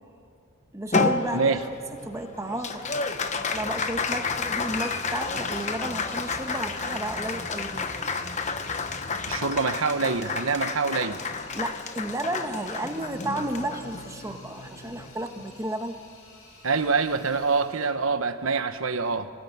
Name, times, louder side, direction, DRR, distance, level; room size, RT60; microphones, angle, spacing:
voice 1, 0.7-1.7 2.0-3.1 3.4-7.9 11.5-16.0, right 1 dB, 15° right, 5 dB, 1.2 m, -33 dB
Applause, 0.9-15.6, left 4 dB, 35° left, 1.0 m, -31 dB
sound 1, 1.2-9.5, equal, 5° left, 3.0 m, -47 dB
voice 2, 1.3-1.6 9.3-11.2 16.6-19.3, right 4 dB, 75° right, 9 dB, 1.1 m, -25 dB
sound 2, 3.2-17.9, left 3 dB, 85° left, 4.8 m, -50 dB
21.5 x 17.5 x 9.4 m, 2.4 s
head